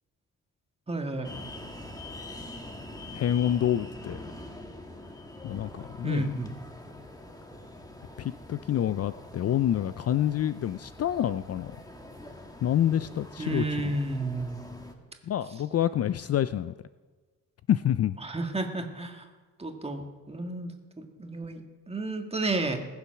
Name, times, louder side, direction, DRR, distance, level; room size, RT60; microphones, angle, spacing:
voice 1, 0.9-1.3 6.0-6.5 13.4-14.6 18.2-19.3 19.6-22.9, right 2 dB, 20° right, 4 dB, 1.8 m, -32 dB
sound 1, 1.2-14.9, left 1 dB, 10° left, 1.5 m, -44 dB
voice 2, 3.1-4.2 5.4-6.3 8.2-11.7 12.6-13.6 15.3-16.7 17.7-18.2, left 11 dB, 50° left, 14 dB, 0.4 m, -27 dB
20.5 x 7.1 x 5.9 m, 1.3 s
cardioid pair, 105°, 32 cm